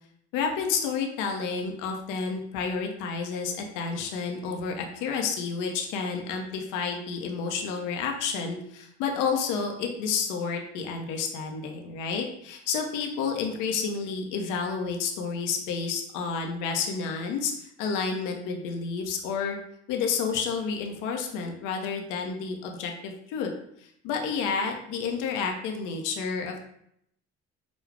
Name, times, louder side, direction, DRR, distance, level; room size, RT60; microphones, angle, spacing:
voice 1, 0.3-19.6 19.9-23.5 23.8-26.6, left 5 dB, 75° left, 2 dB, 0.7 m, -30 dB
5.1 x 2.3 x 3.2 m, 0.73 s
hypercardioid pair, 55°, 32 cm